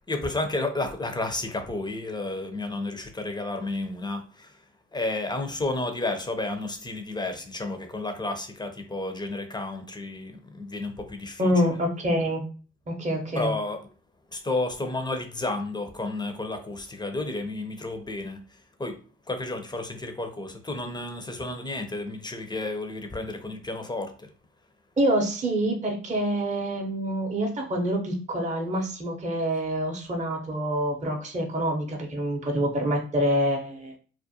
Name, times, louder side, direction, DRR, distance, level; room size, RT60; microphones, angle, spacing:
voice 1, 0.1-4.5 4.9-11.5 13.3-13.8 14.3-18.4 18.8-19.0 19.3-24.3, left 2 dB, 15° left, 6 dB, 0.6 m, -31 dB
voice 2, 11.4-12.4 12.9-13.5 25.0-34.0, equal, 25° right, 0 dB, 0.7 m, -26 dB
2.5 x 2.1 x 2.7 m, 0.38 s
supercardioid pair, 50°, 29 cm